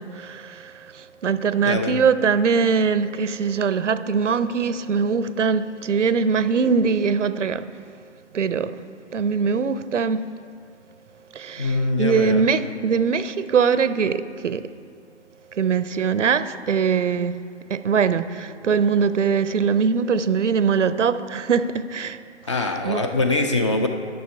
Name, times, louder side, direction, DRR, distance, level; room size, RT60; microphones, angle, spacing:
voice 1, 0.0-7.8 8.3-8.8 9.1-10.3 11.3-14.7 15.5-17.4 17.7-22.2 22.6-23.0, right 6 dB, 80° right, 0.6 m, -22 dB
voice 2, 1.6-2.0 11.6-12.4 22.5-23.9, left 2 dB, 25° left, 0.4 m, -23 dB
10.5 x 6.5 x 4.5 m
figure-of-eight pair, 135°, 36 cm